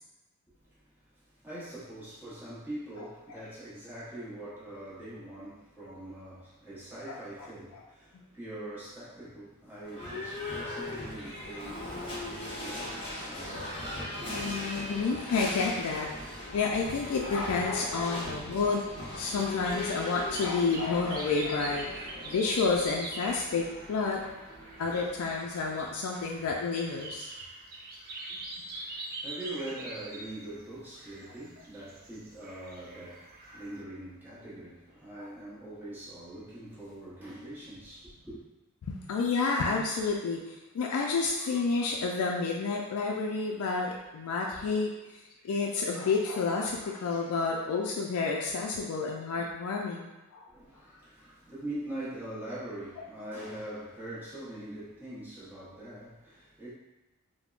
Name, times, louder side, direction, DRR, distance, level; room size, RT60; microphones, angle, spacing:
voice 1, 0.6-13.8 14.2-14.3 28.3-38.4 50.5-56.7, right 1 dB, 10° right, -11 dB, 0.9 m, -43 dB
voice 2, 7.1-7.5 8.1-8.2 14.3-16.1 16.5-18.8 19.1-21.9 22.2-24.2 24.8-27.3 35.2-35.3 38.9-50.4, left 4 dB, 70° left, -1 dB, 0.3 m, -30 dB
Livestock farm animals working animals / Bell, 9.8-25.7, left 1 dB, 25° left, 0.7 m, -39 dB
sound 1, 19.5-33.8, right 2 dB, 40° right, 0.4 m, -44 dB
3.5 x 2.0 x 2.4 m, 1.1 s
head